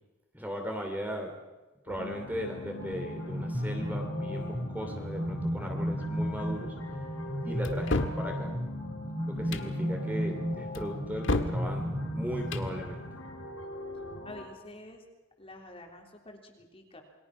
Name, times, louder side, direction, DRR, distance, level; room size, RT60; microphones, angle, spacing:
voice 1, 0.3-1.3 1.8-6.8 7.4-8.5 9.3-13.0, equal, 10° right, 3 dB, 2.8 m, -37 dB
sound 1, 1.9-14.5, left 2 dB, 90° left, 4.5 m, -42 dB
sound 2, 2.8-13.3, equal, 25° right, 2.1 m, -34 dB
sound 3, 7.6-8.2 9.4-9.7 10.7-11.6 12.4-12.7, left 2 dB, 65° left, 1.7 m, -31 dB
voice 2, 10.8-11.2 14.2-15.0 15.4-17.0, left 2 dB, 30° left, 2 dB, 3.5 m, -49 dB
28.0 x 22.5 x 6.1 m, 1.2 s
head